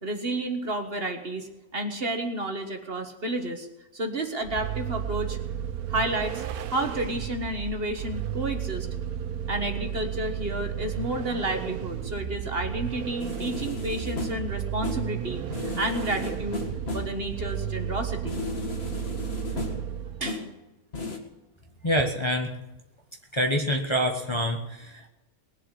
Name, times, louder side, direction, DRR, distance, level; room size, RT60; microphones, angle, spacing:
voice 1, 0.0-3.7 3.9-5.4 5.9-6.4 6.7-8.9 9.5-16.7 16.9-18.4 20.2-20.4, right 1 dB, 40° right, 5 dB, 1.7 m, -31 dB
Vehicle, 4.4-20.4, right 9 dB, 85° right, 1.3 m, -33 dB
sound 1, 13.2-14.6 14.8-15.2 15.5-17.2 18.2-19.9 20.3-20.6 20.9-21.2, left 3 dB, 45° left, 2.1 m, -35 dB
voice 2, 21.8-22.6 23.3-25.1, equal, 20° left, 2 dB, 1.2 m, -26 dB
20.0 x 7.5 x 8.2 m, 1.0 s
omnidirectional pair, 1.6 m